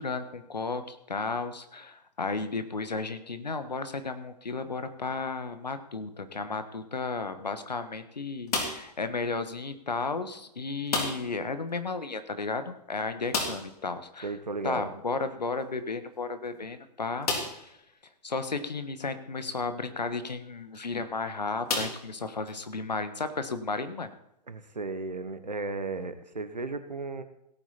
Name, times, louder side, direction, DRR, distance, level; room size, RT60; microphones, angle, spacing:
voice 1, 0.0-14.3 14.6-17.7 18.2-24.1, left 4 dB, 80° left, 10 dB, 1.3 m, -34 dB
sound 1, 8.5-9.0 10.9-11.4 11.7-11.8 12.1-12.2 13.3-13.8 15.6-15.7 16.3-16.4 17.2-17.7 18.4-18.5 20.6-20.8 21.7-22.5, left 3 dB, 65° left, 3.3 m, -32 dB
voice 2, 14.2-14.8 24.5-27.2, right 3 dB, 85° right, 10 dB, 1.3 m, -34 dB
17.0 x 8.9 x 4.2 m, 0.81 s
figure-of-eight pair, 105°, 21 cm